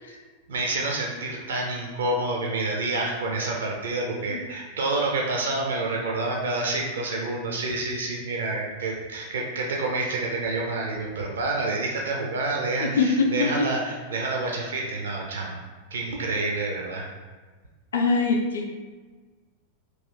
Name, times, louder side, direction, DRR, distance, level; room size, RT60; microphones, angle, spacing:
voice 1, 0.5-15.6 15.9-17.1, right 2 dB, 65° right, -1 dB, 0.5 m, -28 dB
voice 2, 12.8-13.7 17.9-18.7, left 4 dB, 65° left, 2 dB, 0.4 m, -23 dB
3.1 x 2.6 x 3.7 m, 1.4 s
figure-of-eight pair, 90°, 0 cm